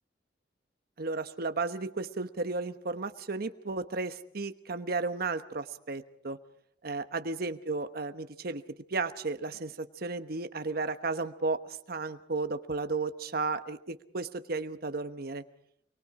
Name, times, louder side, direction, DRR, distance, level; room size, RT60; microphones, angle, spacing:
voice 1, 1.0-6.4 6.8-8.6 8.9-11.6 11.9-15.4, right 3 dB, 55° right, 9 dB, 1.1 m, -34 dB
26.0 x 23.0 x 4.9 m, 0.68 s
head